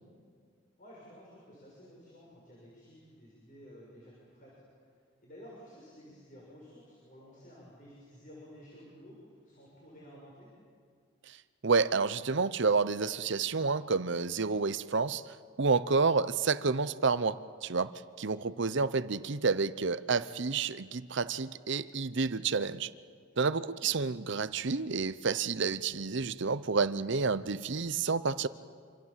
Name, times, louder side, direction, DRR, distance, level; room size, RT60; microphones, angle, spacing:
voice 1, 0.8-9.2 9.4-10.5 23.3-23.6, equal, 40° left, -4 dB, 6.8 m, -53 dB
voice 2, 11.6-17.9 18.2-22.9 23.4-28.5, right 4 dB, 60° right, 15 dB, 0.8 m, -29 dB
27.5 x 27.0 x 7.5 m, 2.1 s
head